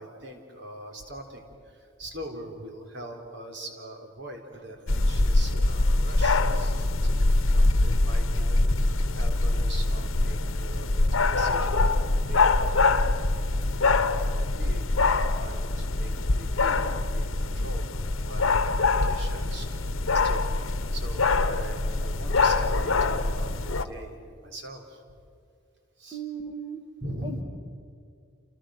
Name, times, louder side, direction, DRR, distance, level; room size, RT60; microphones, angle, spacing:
voice 1, 0.0-7.1 7.4-12.5 12.8-12.9 13.5-20.4 20.9-25.1 26.0-26.2 27.0-27.4, right 1 dB, 55° right, 3 dB, 4.0 m, -42 dB
sound 1, 4.9-23.9, left 2 dB, 75° left, 1.1 m, -24 dB
voice 2, 26.1-26.8 27.2-27.4, right 6 dB, 25° right, 2 dB, 1.7 m, -36 dB
29.0 x 29.0 x 6.6 m, 2.4 s
head